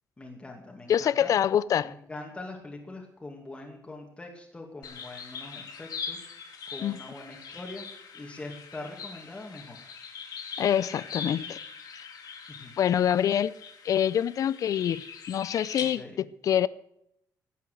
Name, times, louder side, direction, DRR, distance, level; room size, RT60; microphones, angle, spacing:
voice 1, 0.2-1.3 1.8-7.8 8.1-9.8 12.5-12.7 16.0-16.3, left 2 dB, 15° left, 2.4 m, -43 dB
voice 2, 0.9-1.9 6.8-7.0 10.6-11.6 11.9-12.0 12.8-13.5 13.8-16.7, left 9 dB, 60° left, 0.6 m, -26 dB
sound 1, 4.8-15.8, left 6 dB, 75° left, 3.9 m, -41 dB
18.0 x 8.2 x 8.0 m
cardioid pair, 160°, 7 cm